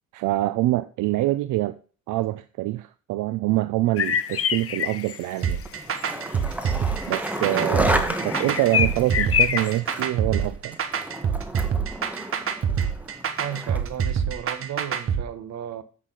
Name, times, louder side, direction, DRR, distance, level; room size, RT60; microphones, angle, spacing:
voice 1, 0.1-1.7 2.1-5.6 7.1-10.8, right 16 dB, 85° right, 0.5 m, -25 dB
sound 1, 4.0-5.2 6.0-6.1 6.5-9.8, left 9 dB, 50° left, 0.8 m, -26 dB
sound 2, 5.4-15.2, right 7 dB, 45° right, 1.1 m, -26 dB
Skateboard, 5.7-14.0, right 1 dB, 5° right, 1.2 m, -31 dB
voice 2, 13.4-15.8, right 9 dB, 65° right, 1.1 m, -34 dB
8.3 x 6.3 x 3.9 m
cardioid pair, 90°, 30 cm